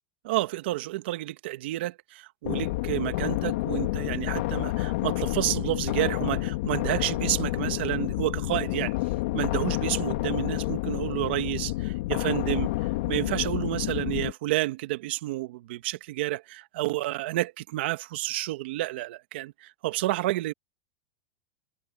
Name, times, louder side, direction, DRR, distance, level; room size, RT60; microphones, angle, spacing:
voice 1, 0.2-9.0 9.3-12.7 13.1-20.5, right 17 dB, 70° right, 1.7 m, -30 dB
sound 1, 2.4-14.3, left 18 dB, 65° left, 2.4 m, -29 dB
supercardioid pair, 155°, 6 cm